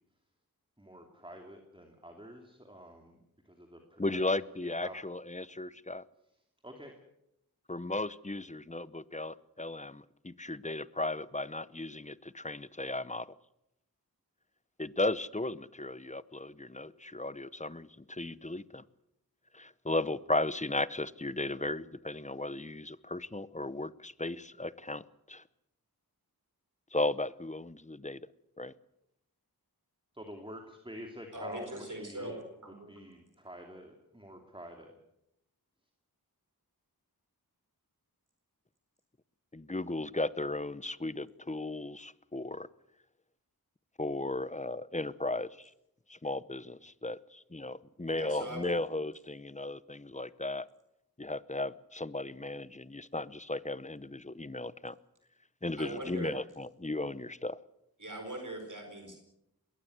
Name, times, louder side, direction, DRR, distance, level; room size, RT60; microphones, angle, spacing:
voice 1, 0.8-4.2 4.6-4.9 6.6-6.9 30.1-32.4 32.9-34.9, equal, 15° right, 3 dB, 2.8 m, -48 dB
voice 2, 4.0-6.0 7.7-13.3 14.8-18.8 19.5-25.4 26.9-28.2 28.6-28.7 39.5-42.7 44.0-45.7 46.1-50.7 51.2-55.0 55.6-57.6, left 2 dB, 20° left, 18 dB, 0.8 m, -36 dB
voice 3, 31.3-32.4 32.6-33.0 48.1-48.7 55.8-56.4 58.0-59.2, right 1 dB, 50° right, 4 dB, 4.4 m, -41 dB
21.5 x 18.0 x 8.0 m, 0.83 s
wide cardioid pair, 50°, 38 cm